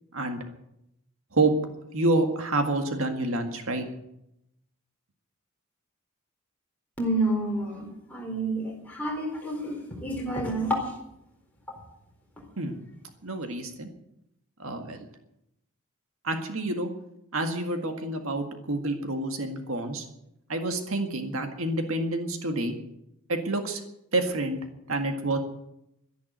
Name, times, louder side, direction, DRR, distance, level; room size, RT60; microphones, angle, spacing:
voice 1, 1.9-3.9 12.6-12.8 13.2-13.9 14.6-15.1 16.2-16.9 17.3-20.1 20.5-22.8 23.3-23.8 24.1-24.6 24.9-25.4, right 2 dB, 70° right, 5 dB, 1.9 m, -28 dB
voice 2, 7.0-10.8, right 1 dB, 5° left, -1 dB, 4.1 m, -29 dB
12.5 x 11.0 x 9.2 m, 0.82 s
head